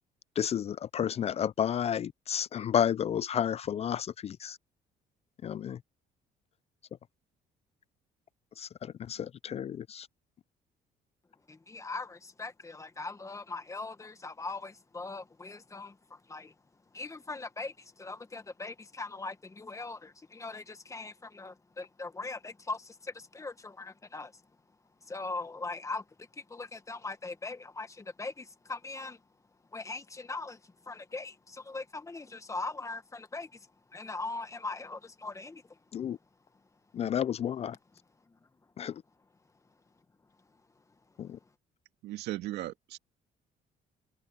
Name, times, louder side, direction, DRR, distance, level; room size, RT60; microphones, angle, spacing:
voice 1, 0.4-4.6 5.4-5.8 8.6-10.1 35.9-36.2 36.9-37.8 38.8-39.0 41.2-41.4, left 9 dB, 40° left, 0.4 m, -31 dB
voice 2, 11.5-16.5 16.9-24.4 25.0-29.2 29.7-33.7 33.9-35.8 38.3-38.4, left 3 dB, 20° left, 1.6 m, -40 dB
voice 3, 42.0-43.0, right 15 dB, 85° right, 2.2 m, -37 dB
cardioid pair, 110°, 17 cm